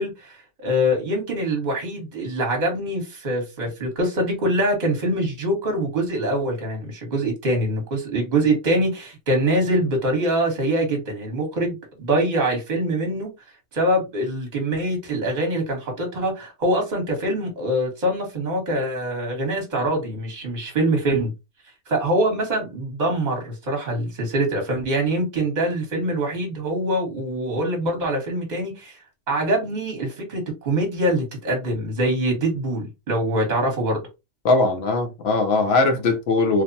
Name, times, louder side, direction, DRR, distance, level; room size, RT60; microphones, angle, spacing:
voice 1, 0.0-13.3 13.7-21.3 21.9-29.0 29.3-34.0, right 1 dB, 35° right, 1.1 m, -24 dB
voice 2, 34.4-36.6, left 3 dB, 65° left, 0.7 m, -20 dB
3.1 x 2.0 x 2.6 m
omnidirectional pair, 1.3 m